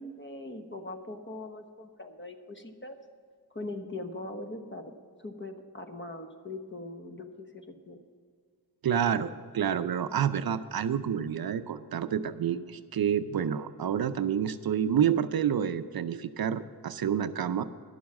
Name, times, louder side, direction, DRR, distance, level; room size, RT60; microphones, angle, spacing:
voice 1, 0.0-3.0 3.5-8.0, left 2 dB, 30° left, 5 dB, 1.1 m, -41 dB
voice 2, 8.8-17.6, right 8 dB, 65° right, 12 dB, 0.6 m, -28 dB
11.5 x 7.1 x 7.4 m, 2.1 s
wide cardioid pair, 85°, 40 cm